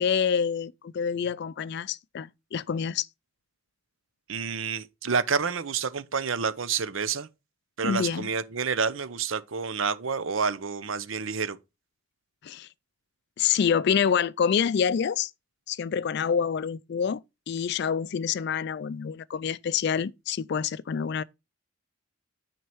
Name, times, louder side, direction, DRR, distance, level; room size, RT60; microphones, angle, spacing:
voice 1, 0.0-3.1 7.8-8.3 12.4-12.7 13.4-15.3 15.7-17.2 17.5-21.2, left 7 dB, 50° left, 0.3 m, -27 dB
voice 2, 4.3-7.3 7.8-11.6, right 5 dB, 70° right, 0.7 m, -29 dB
9.5 x 4.5 x 4.5 m
head